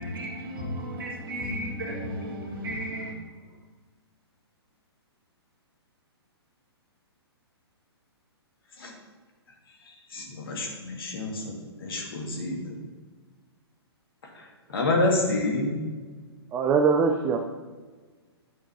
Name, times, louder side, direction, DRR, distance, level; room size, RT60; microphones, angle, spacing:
voice 1, 0.0-3.1, equal, 55° right, -1 dB, 2.0 m, -34 dB
voice 2, 10.1-12.7 14.7-15.9, left 2 dB, 60° left, 0 dB, 2.0 m, -28 dB
voice 3, 16.5-17.4, right 5 dB, 15° right, 4 dB, 0.4 m, -22 dB
10.0 x 6.8 x 2.8 m, 1.4 s
figure-of-eight pair, 120°, 14 cm